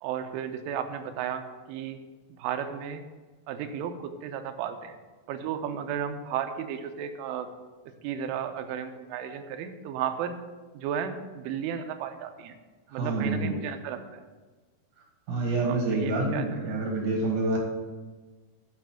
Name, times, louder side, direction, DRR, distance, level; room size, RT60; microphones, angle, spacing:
voice 1, 0.0-2.0 2.3-3.0 3.5-5.0 5.3-7.5 8.0-10.4 10.7-12.6 12.9-14.2 15.6-16.6, right 8 dB, 90° right, 7 dB, 3.4 m, -34 dB
voice 2, 13.0-13.5 15.3-17.6, right 2 dB, 55° right, 0 dB, 2.4 m, -27 dB
9.7 x 6.5 x 7.6 m, 1.3 s
omnidirectional pair, 5.5 m